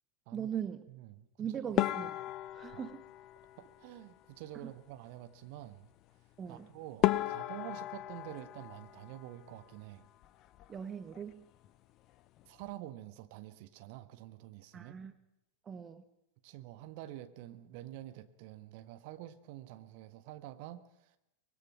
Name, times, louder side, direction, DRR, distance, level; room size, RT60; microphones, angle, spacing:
voice 1, 0.3-0.8 1.4-2.1 2.5-3.0 4.6-4.7 6.4-6.7 10.7-11.4 14.7-15.1 15.6-16.0, right 8 dB, 20° right, 11 dB, 1.2 m, -40 dB
voice 2, 0.9-1.3 1.5-1.7 2.7-2.9 3.6-5.9 6.5-10.1 12.4-14.9 16.4-21.2, right 14 dB, 45° right, 10 dB, 1.5 m, -48 dB
sound 1, 1.8-4.2 6.5-6.6 7.0-9.8 10.0-10.8 11.1-11.3 11.6-11.7 12.4-12.7, left 15 dB, 35° left, 0.8 m, -35 dB
24.5 x 21.0 x 6.1 m, 0.86 s
figure-of-eight pair, 90°, 0 cm